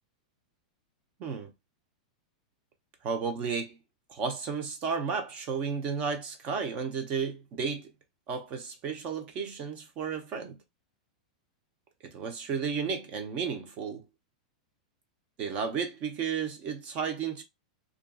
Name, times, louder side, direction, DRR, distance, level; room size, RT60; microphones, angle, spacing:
voice 1, 1.2-1.5 3.0-3.8 4.1-7.9 8.3-10.6 12.0-14.0 15.4-17.4, right 6 dB, 35° right, 0.8 m, -33 dB
2.6 x 2.4 x 2.3 m
supercardioid pair, 150°, 4 cm